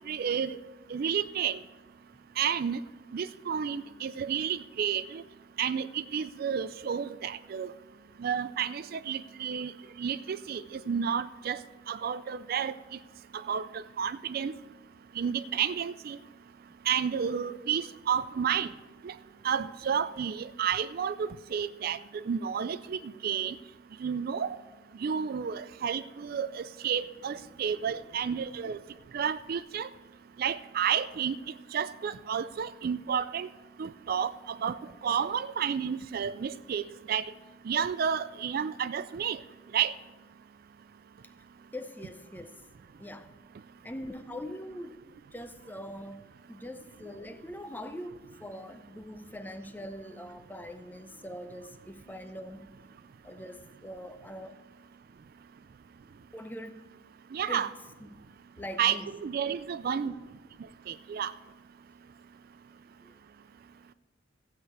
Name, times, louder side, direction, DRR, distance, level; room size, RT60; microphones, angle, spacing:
voice 1, 0.1-0.6 0.9-1.6 2.4-2.8 3.1-5.2 5.6-7.7 8.2-9.7 10.0-11.6 11.9-12.7 13.5-14.5 15.2-16.2 16.9-18.7 19.0-19.1 19.4-23.6 24.0-24.6 25.0-28.8 29.1-29.9 30.4-31.4 31.7-33.5 33.8-36.8 37.1-37.2 37.7-39.4 39.7-39.9 57.3-57.7 58.8-60.1 60.9-61.3, right 7 dB, 50° right, 0.3 m, -31 dB
voice 2, 27.5-28.1 41.2-41.3 41.7-42.6 43.0-43.3 43.8-45.0 45.3-52.7 53.2-54.6 56.3-56.8 57.5-57.7 58.0-58.3 58.6-59.2 63.0-63.2, left 1 dB, 10° left, 0.6 m, -43 dB
15.0 x 8.3 x 4.8 m
head